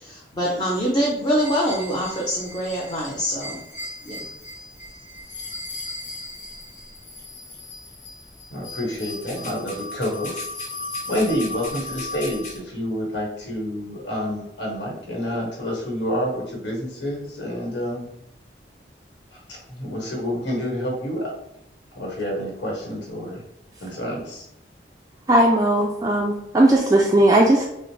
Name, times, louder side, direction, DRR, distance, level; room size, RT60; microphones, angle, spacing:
voice 1, 0.0-3.6 4.1-4.3, equal, 25° left, -4 dB, 0.7 m, -24 dB
sound 1, 1.4-12.6, left 2 dB, 45° left, 1.1 m, -36 dB
voice 2, 8.5-10.5 11.0-18.1 19.3-21.3 21.9-23.4 23.8-24.5, equal, 80° left, -1 dB, 1.3 m, -28 dB
voice 3, 25.3-27.6, right 1 dB, 20° right, -1 dB, 0.3 m, -17 dB
5.9 x 2.1 x 3.1 m, 0.83 s
head